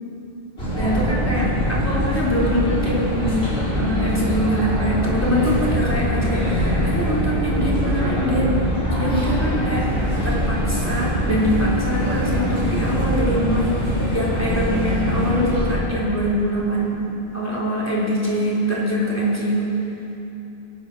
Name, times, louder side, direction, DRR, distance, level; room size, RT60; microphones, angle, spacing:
sound 1, 0.6-15.7, equal, 85° left, 4.8 m, -23 dB
voice 1, 0.7-8.6 9.0-9.9 10.2-17.1 17.3-19.7, equal, 15° left, -7 dB, 3.9 m, -23 dB
22.5 x 9.0 x 6.3 m, 3.0 s
omnidirectional pair, 1.0 m